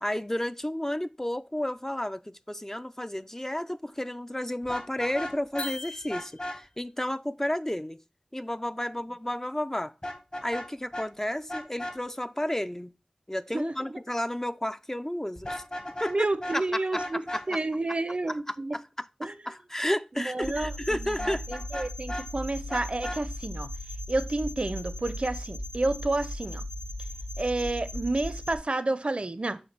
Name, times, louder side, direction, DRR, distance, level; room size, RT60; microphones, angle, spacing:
voice 1, 0.0-8.0 8.3-9.9 10.4-12.9 13.3-15.6 16.0-16.3 16.5-17.0 17.3-17.6 19.2-21.4 21.7-21.9, left 1 dB, 20° left, 0.4 m, -32 dB
Vehicle horn car horn honking, 4.6-5.7 6.1-6.6 10.0-10.7 10.9-11.1 11.5-12.0 15.4-16.2 16.4-16.6 16.9-17.4 21.2-22.3 22.7-23.2, left 1 dB, 40° left, 1.5 m, -35 dB
sound 1, 5.6-6.7, left 2 dB, 90° left, 0.5 m, -40 dB
voice 2, 13.5-14.0 16.1-18.8 19.2-19.3 20.3-23.7 24.1-26.6 27.4-29.6, right 2 dB, 60° right, 0.6 m, -30 dB
sound 2, 20.4-28.6, left 1 dB, 70° left, 2.9 m, -37 dB
7.1 x 3.1 x 5.9 m
wide cardioid pair, 50°, 2 cm